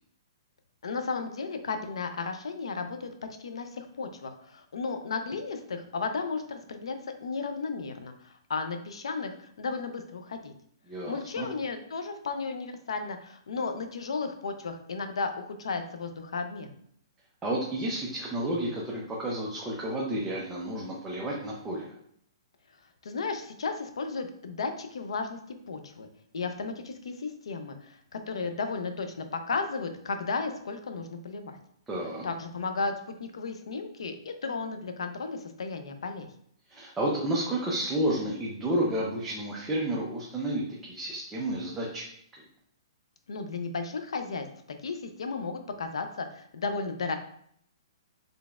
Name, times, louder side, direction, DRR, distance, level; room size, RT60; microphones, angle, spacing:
voice 1, 0.8-3.1 3.4-7.0 7.2-10.5 11.1-16.7 23.0-25.4 25.7-26.1 26.3-31.6 32.2-32.9 33.2-36.3 43.3-44.5 44.8-47.2, left 4 dB, 85° left, 7 dB, 0.5 m, -34 dB
voice 2, 10.9-11.5 17.4-21.9 31.9-32.2 36.7-42.0, right 1 dB, 10° right, -5 dB, 0.5 m, -31 dB
4.0 x 3.3 x 2.3 m, 0.67 s
hypercardioid pair, 160°, 3 cm